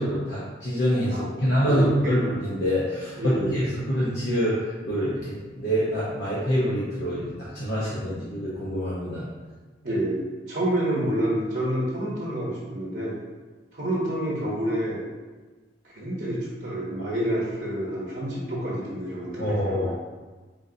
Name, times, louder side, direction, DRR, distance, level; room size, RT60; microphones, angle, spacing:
voice 1, 0.0-9.3 19.4-19.9, equal, 70° left, -8 dB, 0.8 m, -26 dB
voice 2, 1.1-2.2 3.2-3.6 9.8-13.2 13.7-15.0 15.8-19.9, right 1 dB, 50° right, -6 dB, 0.9 m, -28 dB
4.0 x 3.6 x 2.7 m, 1.3 s
head